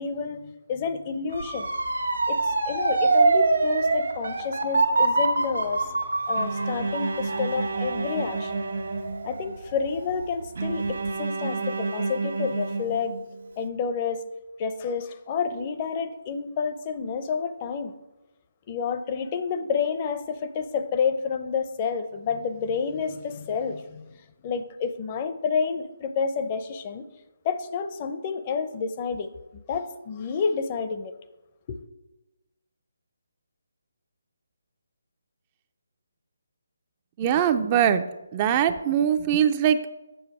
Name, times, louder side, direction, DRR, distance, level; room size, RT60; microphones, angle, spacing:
voice 1, 0.0-1.7 2.3-5.9 6.3-8.6 9.2-13.2 13.6-14.2 14.6-17.9 18.7-24.2 24.4-27.0 27.4-31.1 31.7-31.8, left 6 dB, 30° left, 0.6 m, -29 dB
Motor vehicle (road) / Siren, 1.3-10.2 10.6-11.1, right 3 dB, 80° right, 1.6 m, -25 dB
Bowed string instrument, 6.4-9.6 10.6-13.5, right 3 dB, 65° right, 1.1 m, -30 dB
voice 2, 37.2-38.0 38.3-39.9, right 9 dB, 25° right, 0.4 m, -22 dB
7.8 x 6.5 x 4.7 m
figure-of-eight pair, 155°, 0 cm